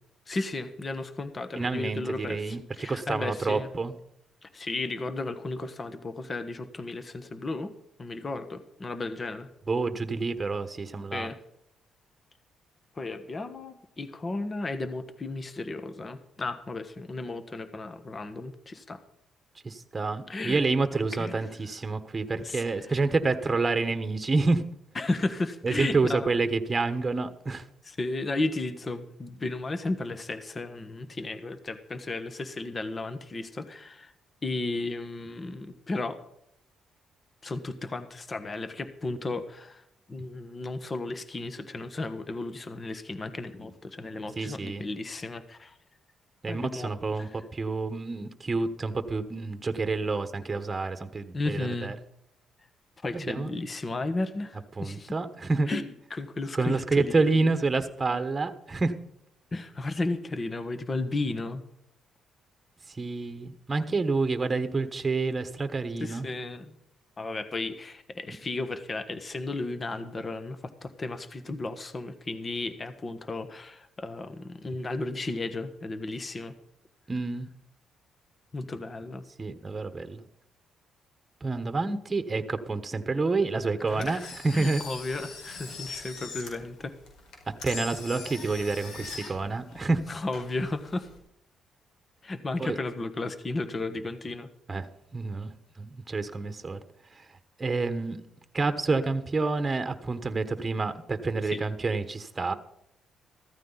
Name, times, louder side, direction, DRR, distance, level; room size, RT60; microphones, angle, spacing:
voice 1, 0.3-3.7 4.4-7.7 8.0-9.5 11.1-11.4 12.9-19.0 20.3-20.6 21.1-21.4 22.4-22.6 24.9-26.3 27.8-34.1 34.4-36.2 37.4-45.7 46.5-46.9 47.2-47.4 51.3-52.0 53.0-55.1 55.7-55.8 56.1-57.5 59.5-61.6 66.0-66.7 67.2-76.5 78.5-79.2 83.9-87.0 90.1-91.1 92.2-94.5 101.4-101.6, left 2 dB, 30° left, 10 dB, 1.5 m, -34 dB
voice 2, 1.6-3.9 9.7-11.3 19.6-24.6 25.6-27.6 44.4-44.9 46.4-51.9 53.1-53.5 54.8-55.7 56.5-58.9 62.9-66.3 77.1-77.5 79.4-80.2 81.4-84.8 87.5-90.0 92.6-92.8 94.7-95.5 95.8-96.8 97.1-97.3 97.6-98.2 98.5-102.5, right 3 dB, 25° right, 9 dB, 1.3 m, -28 dB
Engine, 83.9-91.2, left 4 dB, 80° left, 4.9 m, -42 dB
14.5 x 14.0 x 4.1 m, 0.77 s
cardioid pair, 90°, 0 cm